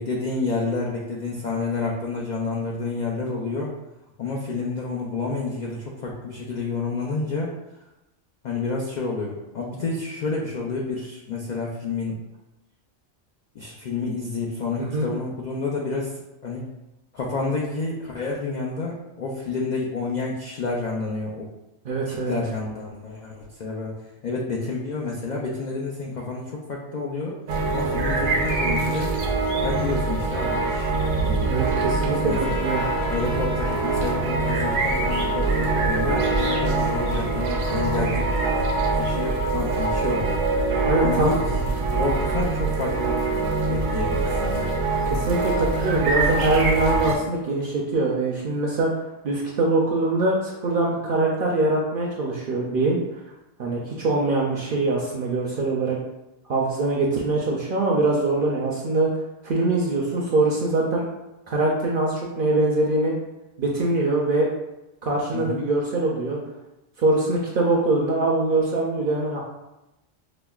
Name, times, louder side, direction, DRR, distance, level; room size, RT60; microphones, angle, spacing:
voice 1, 0.0-3.7 4.2-7.5 8.4-12.2 13.5-16.7 17.1-21.5 22.1-23.9 24.2-27.4 27.7-29.1 29.6-31.4 32.2-32.6 33.1-38.3 38.9-40.4 41.0-41.4 41.9-43.2 43.7-44.8 65.3-65.6, left 3 dB, 75° left, -3 dB, 0.4 m, -29 dB
voice 2, 21.8-22.4 31.5-32.9 40.8-41.3 45.1-48.9 49.2-53.0 53.6-56.0 56.5-59.1 59.4-61.0 61.5-63.1 63.6-64.5 65.0-66.4 67.0-69.4, right 2 dB, 60° right, -3 dB, 0.5 m, -23 dB
sound 1, 27.5-47.2, right 3 dB, 85° right, 1.0 m, -24 dB
Trumpet, 32.2-38.9, left 2 dB, 60° left, 1.0 m, -38 dB
5.0 x 2.1 x 2.3 m, 0.95 s
omnidirectional pair, 1.3 m